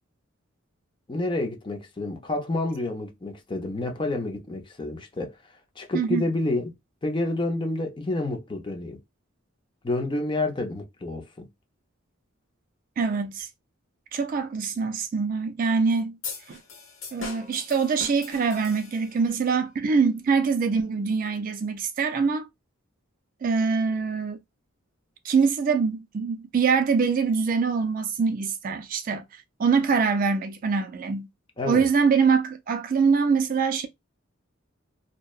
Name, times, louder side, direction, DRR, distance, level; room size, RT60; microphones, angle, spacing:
voice 1, 1.1-5.3 5.8-6.7 7.0-9.0 9.8-11.5 31.6-31.9, left 2 dB, 25° left, 0.5 m, -29 dB
voice 2, 13.0-13.5 14.1-16.2 16.5-16.6 17.1-22.5 23.4-24.4 25.2-29.2 29.6-31.3 31.7-33.9, right 5 dB, 40° right, 0.3 m, -24 dB
sound 1, 16.2-19.3, left 4 dB, 70° left, 1.1 m, -40 dB
2.6 x 2.1 x 2.3 m
head